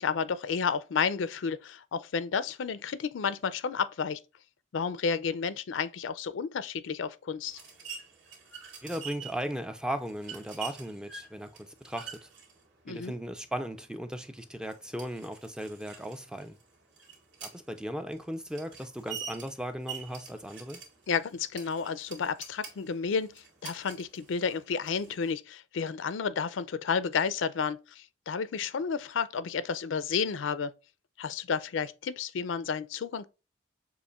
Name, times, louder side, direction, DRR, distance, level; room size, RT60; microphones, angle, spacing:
voice 1, 0.0-4.2 4.7-7.6 12.9-13.1 21.1-30.7 31.2-33.3, left 6 dB, 80° left, 0.4 m, -31 dB
sound 1, 7.4-25.3, right 6 dB, 75° right, 2.4 m, -47 dB
voice 2, 8.8-12.3 12.9-16.6 17.4-20.8, equal, 5° right, 0.3 m, -37 dB
7.0 x 2.5 x 2.3 m
head